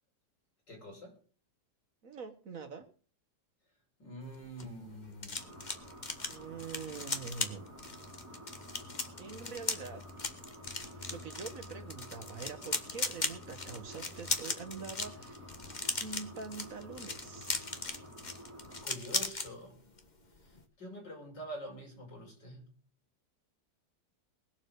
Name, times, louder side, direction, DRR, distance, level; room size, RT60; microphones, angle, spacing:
voice 1, 0.7-1.2 4.0-5.6 18.8-19.8 20.4-22.8, right 1 dB, 75° left, 5.9 m, -46 dB
voice 2, 2.0-2.9 6.3-7.7 9.2-10.3 10.7-15.5 15.8-17.6, right 5 dB, 50° right, 1.6 m, -45 dB
sound 1, 4.3-19.5 19.8-20.1 20.4-20.6, left 3 dB, 25° left, 1.5 m, -38 dB
sound 2, 5.4-18.9, left 1 dB, 10° right, 3.7 m, -50 dB
20.0 x 7.3 x 6.6 m
omnidirectional pair, 1.9 m